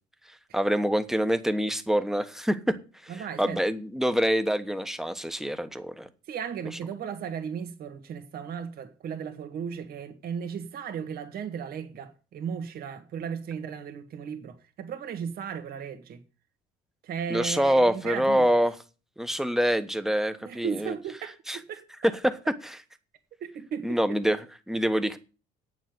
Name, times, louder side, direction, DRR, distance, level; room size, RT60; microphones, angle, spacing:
voice 1, 0.5-6.1 17.3-18.7 19.2-20.9 21.5-21.6 22.2-22.8 23.8-25.2, equal, ahead, 1.1 m, -26 dB
voice 2, 3.1-3.6 6.3-16.2 17.0-18.5 20.4-21.8 23.4-23.9, right 7 dB, 65° right, 1.8 m, -35 dB
8.9 x 7.0 x 7.9 m
cardioid pair, 110°, 17 cm